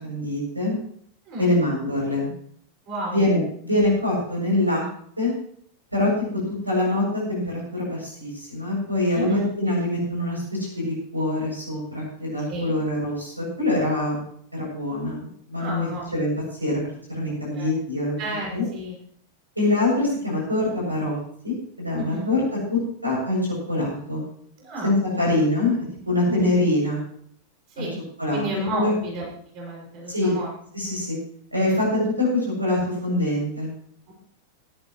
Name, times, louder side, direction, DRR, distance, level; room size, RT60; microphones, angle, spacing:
voice 1, 0.0-0.8 1.4-2.3 3.1-4.9 5.2-5.3 5.9-6.1 6.6-14.2 14.5-16.3 16.6-18.2 18.5-18.6 19.6-21.2 21.4-22.4 22.7-23.4 23.7-24.2 24.8-25.8 26.1-27.0 27.8-27.9 28.2-28.4 28.7-28.9 30.1-30.3 30.7-31.2 31.5-33.7, left 2 dB, 85° right, -3 dB, 7.5 m, -24 dB
voice 2, 1.3-1.7 2.9-3.3 9.1-9.4 12.5-12.7 15.5-16.1 17.3-17.7 18.2-19.0 21.9-22.3 24.6-25.3 26.3-26.5 27.8-28.0 28.3-30.5, right 1 dB, 40° right, -3 dB, 6.3 m, -32 dB
17.5 x 13.5 x 3.2 m, 0.64 s
figure-of-eight pair, 90°, 0 cm